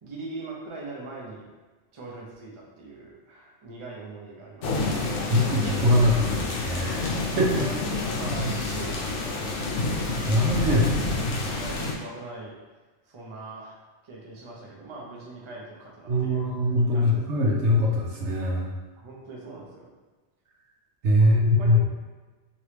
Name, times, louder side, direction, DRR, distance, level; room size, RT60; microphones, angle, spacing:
voice 1, 0.0-1.5 1.9-5.1 7.6-10.1 10.7-11.2 11.5-12.6 13.1-16.5 16.9-17.4 19.0-19.9 21.2-21.9, right 2 dB, 35° right, -3 dB, 0.5 m, -41 dB
sound 1, 4.6-11.9, left 2 dB, 90° left, 0.9 m, -28 dB
voice 2, 5.3-7.1 7.4-7.6 8.4-8.5 10.3-10.8 16.1-18.7 21.0-21.9, left 1 dB, 85° right, -2 dB, 1.0 m, -22 dB
3.0 x 2.9 x 3.2 m, 1.3 s
omnidirectional pair, 1.2 m